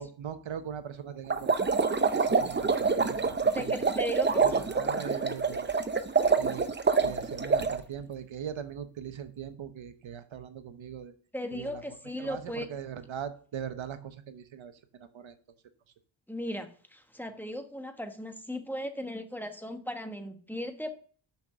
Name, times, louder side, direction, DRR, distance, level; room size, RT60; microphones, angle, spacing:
voice 1, 0.0-1.7 2.1-3.9 4.4-5.7 6.4-6.7 7.0-11.1 11.5-11.8 12.2-15.4, right 8 dB, 75° right, 10 dB, 1.0 m, -40 dB
sound 1, 1.3-7.8, right 5 dB, 25° right, 0.6 m, -26 dB
voice 2, 3.5-4.7 11.3-12.7 16.3-20.9, equal, 5° left, 6 dB, 1.2 m, -37 dB
6.0 x 5.9 x 6.6 m, 0.44 s
cardioid pair, 75°, 47 cm